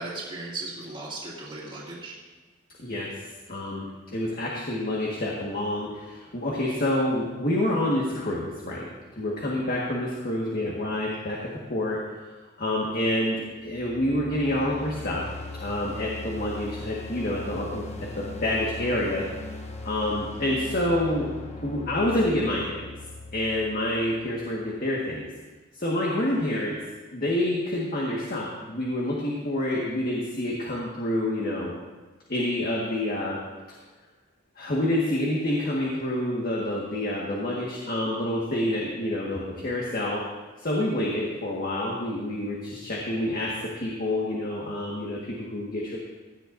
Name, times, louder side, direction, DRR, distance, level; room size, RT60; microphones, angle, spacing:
voice 1, 0.0-2.2, right 2 dB, 30° right, -7 dB, 2.4 m, -36 dB
voice 2, 3.5-3.8 4.1-8.9 9.2-11.4 11.7-12.0 12.6-15.2 15.6-19.2 19.8-21.3 21.6-22.9 23.3-25.3 25.8-26.8 27.1-31.7 32.3-33.4 34.6-40.2 40.6-46.0, left 1 dB, 50° left, -4 dB, 1.6 m, -27 dB
sound 1, 13.6-24.6, left 2 dB, 35° left, 1.0 m, -39 dB
17.0 x 11.0 x 2.6 m, 1.3 s
head